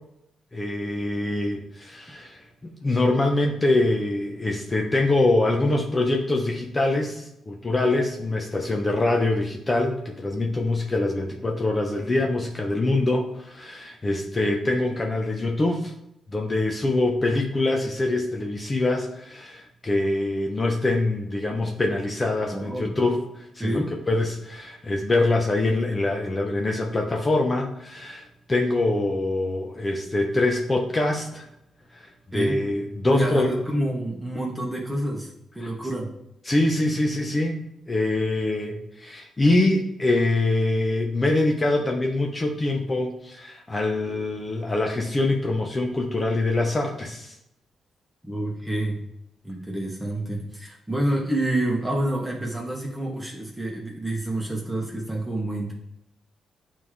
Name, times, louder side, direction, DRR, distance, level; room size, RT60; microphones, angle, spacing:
voice 1, 0.5-15.9 16.3-23.8 24.1-31.5 31.9-33.5 36.4-37.6 37.9-47.4, left 2 dB, 30° left, 1 dB, 1.1 m, -24 dB
voice 2, 22.5-22.9 23.6-23.9 32.3-32.6 33.0-36.1 48.2-49.0 49.4-55.7, right 1 dB, 10° right, -2 dB, 1.6 m, -28 dB
9.0 x 3.7 x 3.4 m, 0.81 s
hypercardioid pair, 45°, 0 cm